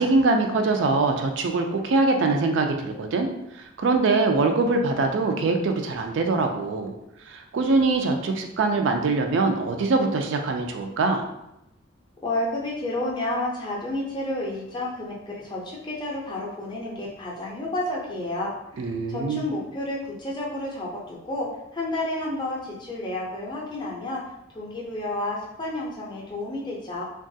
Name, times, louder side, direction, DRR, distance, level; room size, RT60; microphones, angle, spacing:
voice 1, 0.0-3.3 3.6-6.9 7.3-11.3 18.8-19.4, right 3 dB, 65° right, 4 dB, 0.3 m, -23 dB
voice 2, 12.2-18.5 18.8-24.2 24.5-27.1, left 1 dB, 20° left, -3 dB, 0.5 m, -30 dB
2.9 x 2.3 x 2.6 m, 0.85 s
head